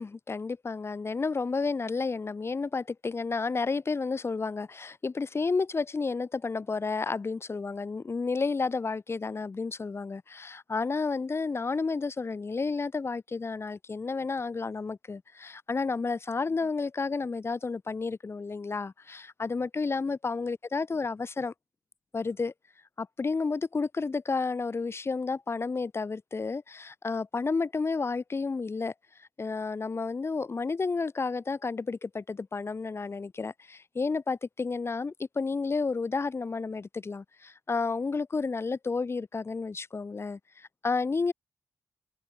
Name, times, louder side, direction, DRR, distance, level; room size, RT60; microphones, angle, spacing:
voice 1, 0.0-21.5 22.1-22.5 23.0-28.9 29.2-41.3, left 4 dB, 40° left, 1.5 m, -31 dB
open air
cardioid pair, 75°, 7 cm